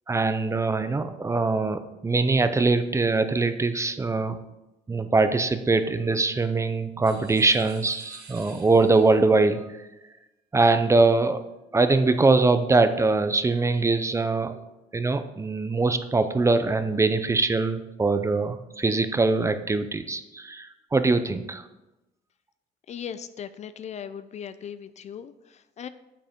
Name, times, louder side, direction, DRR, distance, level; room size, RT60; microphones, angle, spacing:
voice 1, 0.1-4.4 4.9-9.8 10.5-11.4 11.7-14.6 14.9-21.6, right 3 dB, 15° right, 10 dB, 0.6 m, -22 dB
sound 1, 7.0-9.2, right 4 dB, 65° right, 2.0 m, -48 dB
voice 2, 22.9-25.9, left 8 dB, 40° left, 13 dB, 0.4 m, -38 dB
9.0 x 7.4 x 3.6 m, 0.99 s
cardioid pair, 110°, 17 cm